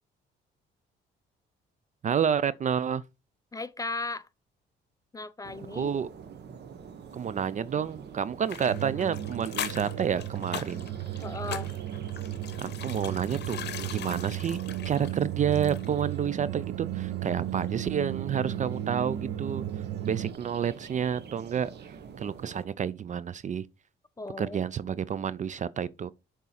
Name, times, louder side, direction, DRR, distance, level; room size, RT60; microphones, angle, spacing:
voice 1, 2.0-3.0 5.7-6.1 7.1-10.9 12.6-13.6 13.9-14.6 14.8-19.7 20.0-21.7 22.2-23.7 24.4-26.1, right 8 dB, 40° right, 0.4 m, -29 dB
voice 2, 3.5-4.3 5.1-5.9 11.2-11.7 24.2-24.6, left 3 dB, 15° left, 0.5 m, -36 dB
sound 1, 5.4-22.7, right 6 dB, 55° right, 0.9 m, -46 dB
sound 2, 8.5-16.1 16.3-16.4, left 9 dB, 60° left, 0.8 m, -41 dB
sound 3, 8.7-20.3, right 13 dB, 85° right, 0.6 m, -35 dB
6.9 x 3.7 x 4.2 m
cardioid pair, 90°, 20 cm